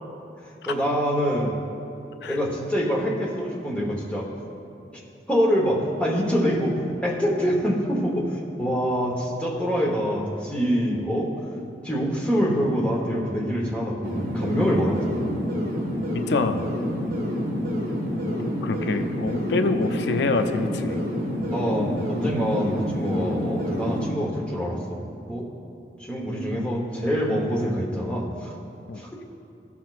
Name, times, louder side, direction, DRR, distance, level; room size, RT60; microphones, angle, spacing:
voice 1, 0.7-1.5 2.3-4.3 5.3-11.4 11.8-15.1 21.4-25.0 25.3-25.5 26.0-28.6 28.9-29.1, equal, 5° left, -3 dB, 1.0 m, -25 dB
sound 1, 14.0-24.1, equal, 55° right, 1.7 m, -28 dB
voice 2, 16.1-16.8 18.3-21.0 28.9-29.0, left 3 dB, 75° left, 7 dB, 0.4 m, -26 dB
15.0 x 5.9 x 2.4 m, 2.8 s
head